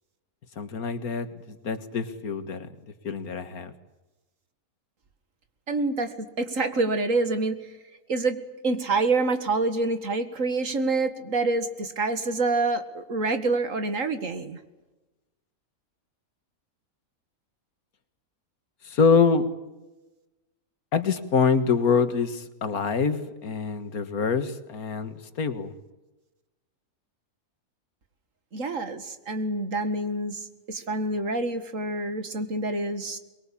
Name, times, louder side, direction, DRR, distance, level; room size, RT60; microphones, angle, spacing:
voice 1, 0.6-2.7 3.0-3.7 18.8-19.5 20.9-25.7, left 5 dB, 90° left, 11 dB, 2.1 m, -25 dB
voice 2, 5.7-7.6 8.1-8.4 8.6-14.6 28.5-30.4 30.7-33.2, right 3 dB, 60° right, 10 dB, 2.3 m, -27 dB
23.5 x 22.0 x 8.6 m, 1.1 s
omnidirectional pair, 1.5 m